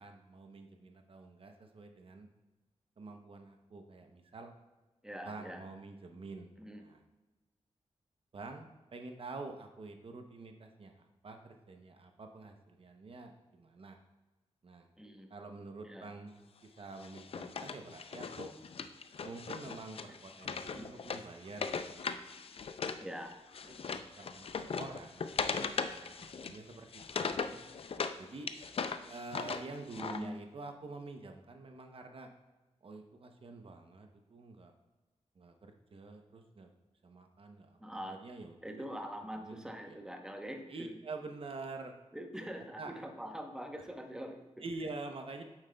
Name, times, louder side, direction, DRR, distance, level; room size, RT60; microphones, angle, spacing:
voice 1, 0.0-2.3 3.0-4.5 5.2-7.0 8.3-14.0 14.6-14.9 15.3-16.3 16.8-18.5 19.2-22.2 22.8-23.0 23.7-25.3 25.5-26.9 27.2-27.4 28.2-28.5 29.1-32.3 32.8-34.7 35.4-36.7 37.0-38.8 39.3-40.0 40.7-41.9 42.8-42.9 44.6-45.4, right 3 dB, 55° right, 5 dB, 0.7 m, -47 dB
voice 2, 5.0-5.6 6.6-6.8 15.0-15.3 15.8-16.0 20.7-20.8 23.0-23.3 23.6-23.8 27.5-27.6 30.0-30.4 37.8-38.2 38.6-40.9 42.1-44.6, equal, 5° right, 4 dB, 0.9 m, -44 dB
Wood, 17.0-23.0 23.3-28.2 28.5-30.2, left 5 dB, 55° left, 0.5 m, -39 dB
8.8 x 7.3 x 2.2 m, 1.1 s
wide cardioid pair, 95°, 11 cm